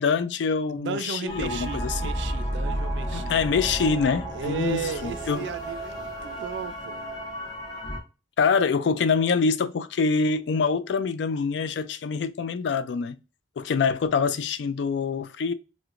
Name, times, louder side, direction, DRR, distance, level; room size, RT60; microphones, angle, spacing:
voice 1, 0.0-2.0 3.1-5.5 8.4-13.2 13.6-15.5, left 5 dB, 75° left, 0.3 m, -25 dB
voice 2, 0.7-3.4 4.3-7.0, right 6 dB, 80° right, 0.3 m, -35 dB
sound 1, 1.3-8.0, right 1 dB, 20° left, 0.7 m, -32 dB
4.5 x 2.1 x 2.4 m
head